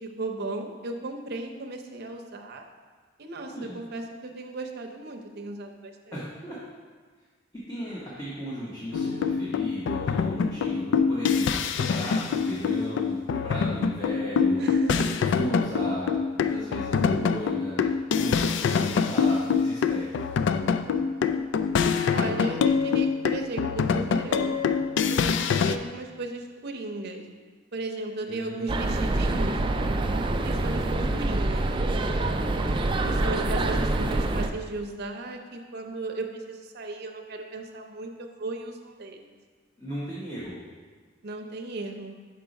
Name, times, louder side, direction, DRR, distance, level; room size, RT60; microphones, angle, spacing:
voice 1, 0.0-2.6 3.2-6.2 14.6-15.2 20.7-24.6 25.1-27.2 27.7-29.6 30.4-31.7 33.0-39.3 41.2-42.1, right 2 dB, 55° right, 2 dB, 0.7 m, -36 dB
voice 2, 3.4-3.8 6.1-6.6 7.5-14.6 14.9-17.8 18.1-20.1 28.3-29.4 31.0-31.3 32.6-32.7 39.8-40.6, equal, 20° left, -8 dB, 1.1 m, -36 dB
sound 1, 8.9-25.8, left 6 dB, 65° left, 0.3 m, -25 dB
sound 2, 28.7-34.5, right 2 dB, 25° right, 0.3 m, -26 dB
5.9 x 4.7 x 5.2 m, 1.5 s
head